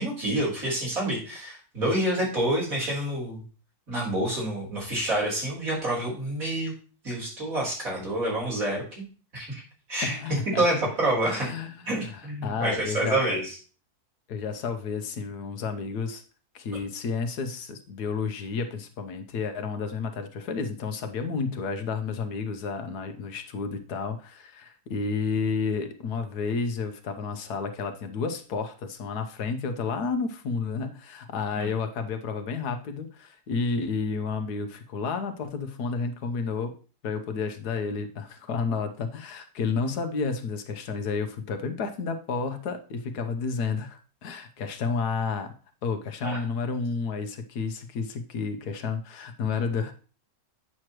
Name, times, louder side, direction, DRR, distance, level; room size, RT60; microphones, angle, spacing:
voice 1, 0.0-3.4 3.9-6.7 7.0-9.0 9.3-9.6 9.9-11.5 11.9-13.5 31.5-31.7 46.2-46.4, right 1 dB, 60° right, -5 dB, 4.3 m, -28 dB
voice 2, 10.0-10.6 11.2-13.4 14.3-16.2 16.5-36.7 37.0-45.5 45.8-49.9, left 5 dB, 85° left, 7 dB, 1.5 m, -31 dB
8.7 x 6.5 x 3.0 m, 0.37 s
omnidirectional pair, 1.7 m